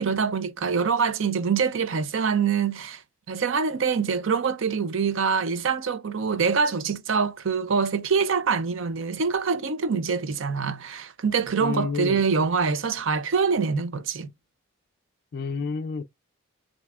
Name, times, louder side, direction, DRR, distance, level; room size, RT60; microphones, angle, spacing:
voice 1, 0.0-3.0 3.3-14.3, right 5 dB, 60° right, 0.5 m, -25 dB
voice 2, 11.6-12.2 15.3-16.0, left 5 dB, 45° left, 0.3 m, -29 dB
6.6 x 2.7 x 2.4 m
head